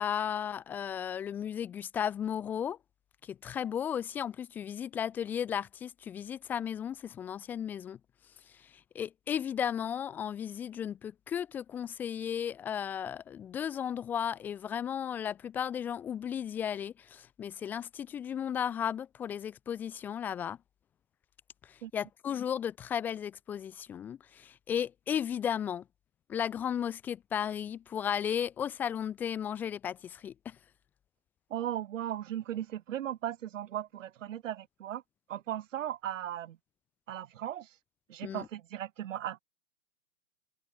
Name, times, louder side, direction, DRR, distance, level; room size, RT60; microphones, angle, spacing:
voice 1, 0.0-2.8 3.2-8.0 8.6-20.6 21.7-25.8 26.3-30.6 38.2-38.5, left 8 dB, 5° left, 0.4 m, -35 dB
voice 2, 31.5-35.0 35.3-36.6 37.1-37.7 38.1-39.4, right 11 dB, 65° right, 2.9 m, -37 dB
hypercardioid pair, 145°, 41 cm